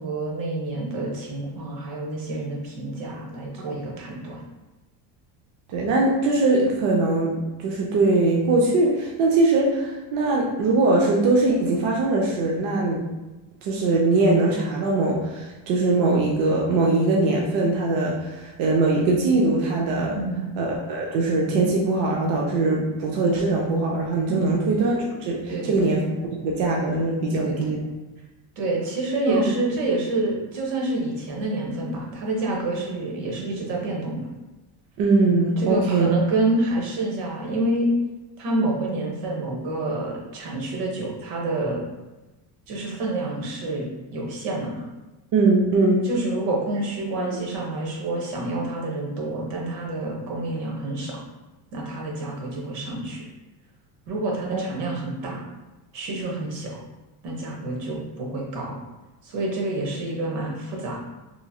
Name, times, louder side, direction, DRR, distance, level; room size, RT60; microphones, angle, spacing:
voice 1, 0.0-4.4 20.1-20.5 24.3-24.6 25.5-25.8 27.3-27.5 28.6-34.2 35.6-37.9 38.4-41.8 42.7-43.8 44.1-44.8 46.0-51.2 51.7-53.2 54.1-55.4 55.9-56.8 57.2-58.7 59.2-61.0, right 2 dB, 80° right, -1 dB, 0.9 m, -28 dB
voice 2, 5.7-13.0 13.6-20.2 20.6-26.1 26.4-27.8 29.3-29.4 35.0-36.1 45.3-46.1 47.2-47.4 54.5-54.6, right 2 dB, 55° right, -2 dB, 0.5 m, -21 dB
3.0 x 2.6 x 2.3 m, 1.1 s
cardioid pair, 170°, 44 cm